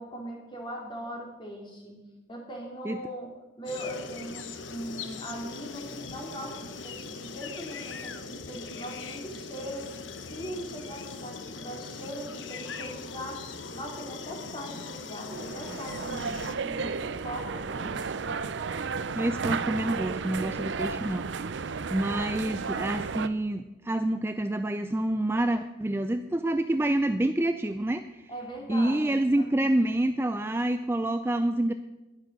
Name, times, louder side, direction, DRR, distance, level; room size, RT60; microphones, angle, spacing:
voice 1, 0.0-3.3 3.6-10.0 10.3-18.3 28.3-29.8, equal, 25° left, 0 dB, 2.7 m, -40 dB
sound 1, 3.7-16.6, left 4 dB, 75° left, 0.9 m, -40 dB
sound 2, 15.3-23.3, right 5 dB, 70° right, 0.5 m, -33 dB
voice 2, 19.2-28.3 28.7-31.7, right 1 dB, 10° right, 8 dB, 0.3 m, -27 dB
11.0 x 10.5 x 6.5 m, 1.1 s
head